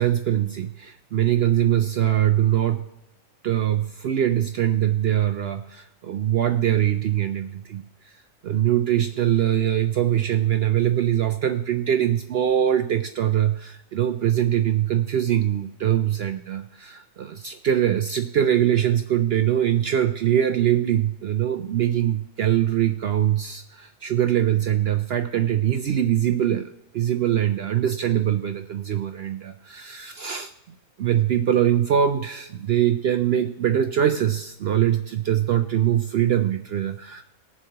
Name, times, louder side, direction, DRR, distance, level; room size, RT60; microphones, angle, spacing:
voice 1, 0.0-2.9 3.4-30.5 31.0-37.2, right 11 dB, 65° right, 8 dB, 0.6 m, -23 dB
20.5 x 7.1 x 2.9 m, 0.92 s
omnidirectional pair, 1.4 m